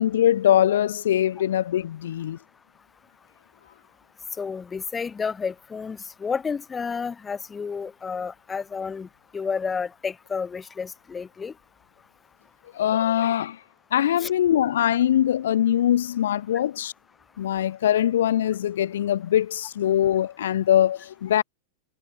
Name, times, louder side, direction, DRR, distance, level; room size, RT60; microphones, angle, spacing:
voice 1, 0.0-2.4 12.7-13.6 13.9-16.9 17.4-21.4, left 11 dB, 90° left, 0.9 m, -22 dB
voice 2, 4.4-9.1 9.3-11.5 14.2-14.3, left 5 dB, 10° left, 4.9 m, -31 dB
supercardioid pair, 170°, 0 cm